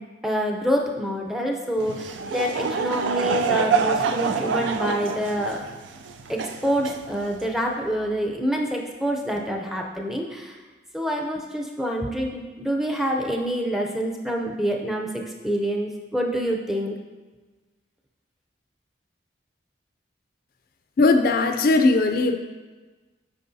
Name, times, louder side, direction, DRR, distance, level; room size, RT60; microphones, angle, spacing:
voice 1, 0.0-5.6 6.3-10.6 10.9-17.0, equal, ahead, 0 dB, 0.5 m, -27 dB
Laughter / Crowd, 1.8-7.5, right 5 dB, 90° right, 0.4 m, -26 dB
voice 2, 21.0-22.4, left 3 dB, 50° left, 6 dB, 0.4 m, -19 dB
9.2 x 4.9 x 2.7 m, 1.3 s
head